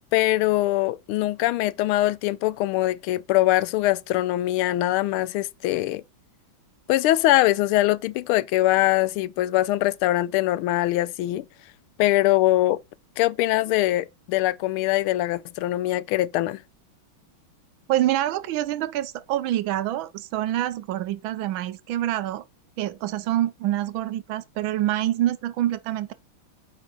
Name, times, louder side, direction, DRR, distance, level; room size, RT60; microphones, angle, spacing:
voice 1, 0.1-6.0 6.9-11.4 12.0-12.8 13.2-16.6, left 16 dB, 85° left, 1.4 m, -22 dB
voice 2, 17.9-22.4 22.8-26.1, right 13 dB, 75° right, 1.3 m, -26 dB
8.9 x 4.8 x 4.0 m
omnidirectional pair, 2.3 m